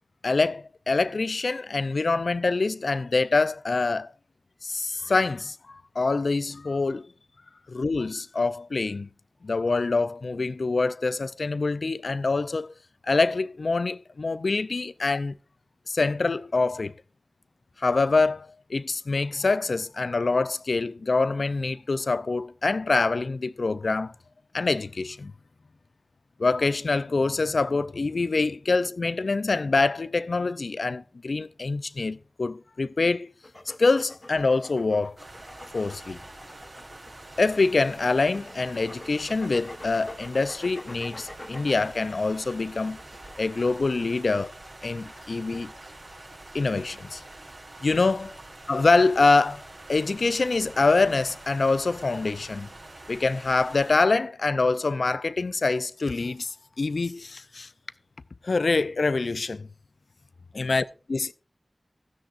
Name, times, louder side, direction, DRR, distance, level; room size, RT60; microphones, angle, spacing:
voice 1, 0.2-4.1 4.6-7.1 7.7-9.1 9.4-12.7 13.1-15.4 15.9-16.9 17.8-24.1 24.5-25.3 26.4-33.3 33.8-35.1 35.7-36.2 37.4-43.0 43.4-44.5 44.8-45.7 46.5-47.2 47.8-48.4 48.7-49.6 49.9-52.7 53.1-57.7 58.4-59.7 60.5-60.8 61.1-61.3, left 3 dB, 75° left, 0.5 m, -25 dB
sound 1, 33.4-43.4, left 1 dB, 30° left, 1.3 m, -46 dB
sound 2, 35.2-53.9, right 2 dB, 60° right, 4.9 m, -46 dB
16.0 x 13.0 x 2.5 m
wide cardioid pair, 75°, 0 cm